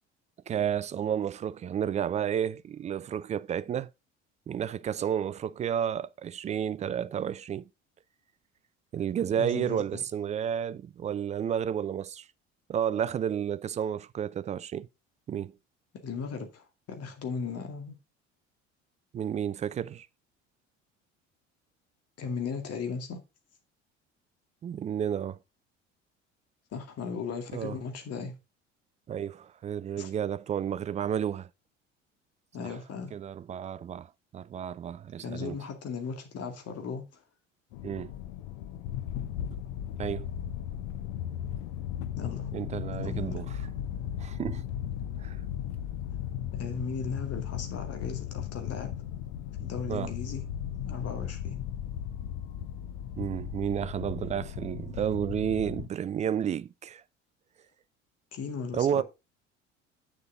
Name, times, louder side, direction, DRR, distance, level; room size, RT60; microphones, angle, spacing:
voice 1, 0.5-3.9 4.5-7.7 8.9-12.3 12.7-14.9 15.3-15.5 19.1-20.1 24.6-25.4 27.5-27.8 29.1-31.5 32.6-32.7 33.1-34.1 34.3-35.6 37.8-38.1 39.5-39.6 40.0-40.3 42.5-43.6 44.2-44.6 45.2-45.4 49.9-50.1 53.2-57.0 58.7-59.0, right 9 dB, 20° right, 0.4 m, -31 dB
voice 2, 9.4-10.0 16.0-18.0 22.2-23.2 26.7-28.4 30.0-30.1 32.5-33.1 35.2-37.0 42.2-42.5 42.9-43.4 46.5-48.9 49.6-50.4 50.8-51.6 58.3-59.0, left 5 dB, 40° left, 2.2 m, -37 dB
sound 1, 37.7-55.9, left 10 dB, 60° left, 0.9 m, -36 dB
8.6 x 6.7 x 3.7 m
figure-of-eight pair, 60°, 37 cm